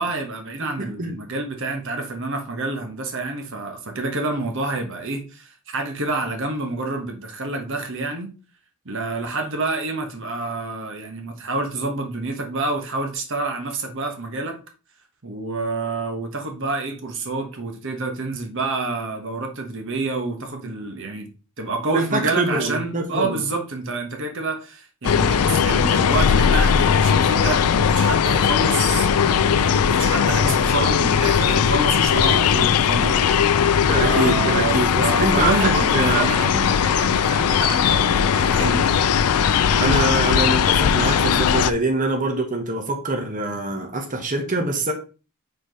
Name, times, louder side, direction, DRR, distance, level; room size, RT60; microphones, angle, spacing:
voice 1, 0.0-8.3 8.8-14.6 15.2-21.3 21.6-39.0, right 3 dB, 60° right, 1.2 m, -28 dB
voice 2, 0.8-1.2 21.9-23.4 33.8-36.3 39.8-44.9, right 2 dB, 35° right, 1.2 m, -24 dB
sound 1, 25.0-41.7, left 7 dB, 85° left, 0.4 m, -19 dB
4.7 x 4.3 x 5.2 m
head